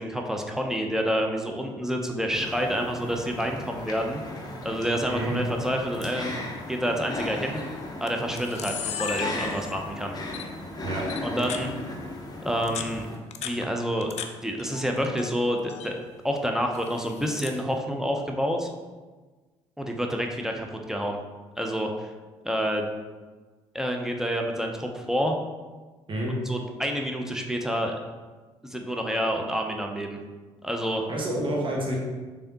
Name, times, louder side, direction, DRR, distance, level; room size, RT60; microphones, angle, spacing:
voice 1, 0.0-4.2 4.6-7.6 8.0-10.1 11.2-11.7 12.4-13.1 13.4-14.1 14.4-16.0 16.2-18.7 19.8-21.2 21.6-22.1 22.4-22.9 23.7-25.4 26.5-27.9 28.6-30.2 30.6-31.1, equal, 5° right, 2 dB, 0.5 m, -28 dB
sound 1, 2.3-13.2, left 2 dB, 30° left, 0.8 m, -37 dB
voice 2, 5.1-5.4 10.8-11.0 26.1-26.4 31.1-32.0, right 1 dB, 35° right, -2 dB, 1.2 m, -28 dB
Camera, 7.2-7.5 8.1-8.2 8.4-9.9 10.3-10.5 11.1-11.7 12.5-14.3 14.6-15.3 15.6-15.9 16.7-17.6, left 7 dB, 50° left, 0.4 m, -35 dB
3.4 x 3.4 x 2.7 m, 1.3 s
hypercardioid pair, 55°, 14 cm